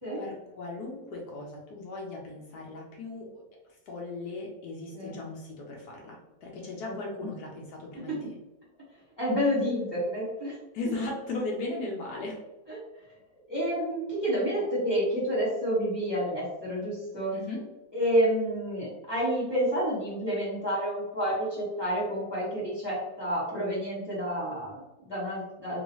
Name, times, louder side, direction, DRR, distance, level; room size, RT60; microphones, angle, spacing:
voice 1, 0.1-3.4 3.9-8.3 10.7-12.4 17.3-17.6, left 2 dB, 65° left, -1 dB, 1.1 m, -37 dB
voice 2, 6.8-7.3 7.9-8.2 9.2-10.5 12.7-12.8 13.5-17.3 17.9-25.8, equal, 15° left, -8 dB, 1.3 m, -29 dB
3.0 x 2.8 x 3.0 m, 0.97 s
omnidirectional pair, 2.1 m